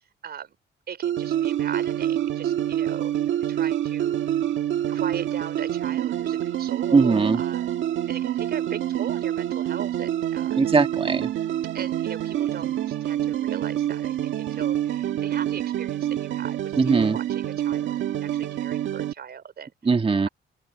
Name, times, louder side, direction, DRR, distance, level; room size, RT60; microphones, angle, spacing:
voice 1, 0.2-0.6 0.9-3.2 3.4-4.2 4.9-7.7 8.1-10.6 11.7-19.7, right 7 dB, 55° right, 4.3 m, -38 dB
sound 1, 1.0-19.1, right 11 dB, 75° right, 1.7 m, -27 dB
voice 2, 6.9-7.4 10.6-11.3 16.8-17.2 19.9-20.3, right 4 dB, 30° right, 1.8 m, -20 dB
cardioid pair, 90°, 20 cm